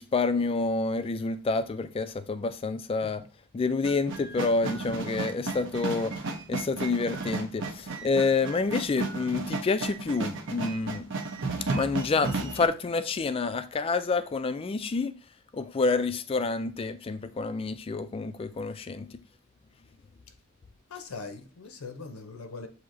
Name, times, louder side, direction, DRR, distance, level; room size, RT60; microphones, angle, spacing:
voice 1, 0.0-3.2 3.5-6.2 6.5-11.1 11.7-15.1 15.5-19.1, left 4 dB, 25° left, 0.3 m, -28 dB
sound 1, 3.8-12.7, right 3 dB, 60° right, 0.7 m, -34 dB
voice 2, 20.9-22.7, left 4 dB, 80° left, 0.6 m, -41 dB
7.2 x 2.8 x 2.6 m
head